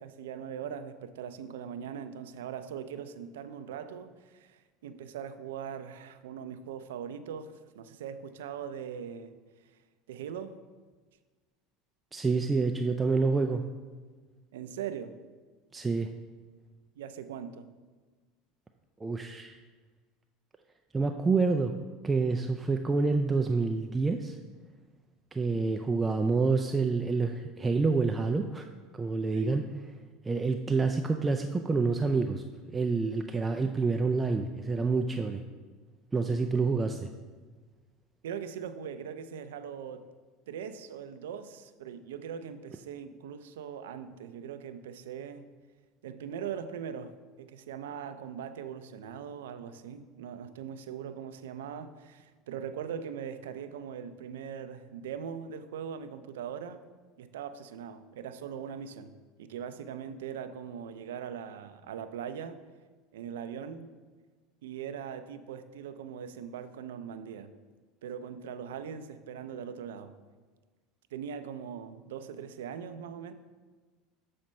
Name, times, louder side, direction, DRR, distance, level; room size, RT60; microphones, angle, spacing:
voice 1, 0.0-9.3 10.1-10.6 14.5-15.2 17.0-17.7 29.3-29.5 38.2-40.0 40.5-45.5 46.0-47.1 47.4-56.8 57.2-59.1 59.4-62.6 63.1-63.9 64.6-67.5 68.0-70.1 71.1-73.3, right 8 dB, 90° right, 11 dB, 0.5 m, -40 dB
voice 2, 12.1-13.6 15.7-16.1 19.0-19.6 20.9-21.7 22.0-24.4 25.3-28.7 28.9-29.7 30.3-32.4 32.7-35.4 36.1-37.1, right 4 dB, 15° right, 5 dB, 0.4 m, -27 dB
7.5 x 4.3 x 5.2 m, 1.4 s
supercardioid pair, 105°, 0 cm